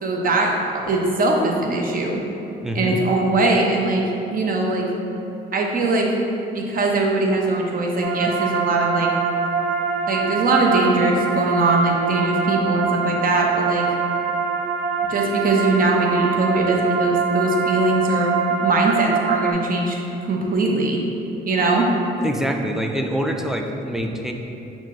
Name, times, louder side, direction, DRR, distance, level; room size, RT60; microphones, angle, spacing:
voice 1, 0.0-2.2 2.7-4.0 4.3-4.8 5.5-6.1 6.5-9.1 10.1-13.8 15.1-18.4 18.6-21.0 21.5-21.9, right 2 dB, 45° right, 0 dB, 0.7 m, -21 dB
voice 2, 2.6-3.0 22.2-24.3, equal, ahead, 2 dB, 0.3 m, -25 dB
sound 1, 8.0-19.5, right 5 dB, 85° right, 0.5 m, -24 dB
5.7 x 2.5 x 3.6 m, 2.9 s
cardioid pair, 90°, 20 cm